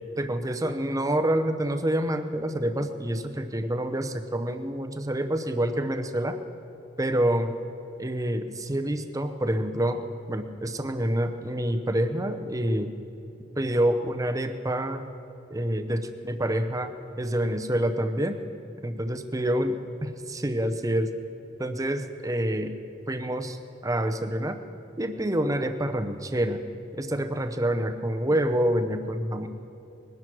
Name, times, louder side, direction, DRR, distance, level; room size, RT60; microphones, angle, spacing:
voice 1, 0.2-6.4 7.0-7.6 8.0-10.0 10.3-12.9 13.6-15.1 15.5-16.9 17.2-18.4 18.8-21.1 21.6-22.7 23.1-23.6 23.8-24.6 25.0-26.6 26.9-29.5, right 1 dB, 15° right, 7 dB, 0.8 m, -27 dB
21.0 x 11.0 x 6.1 m, 2.7 s
head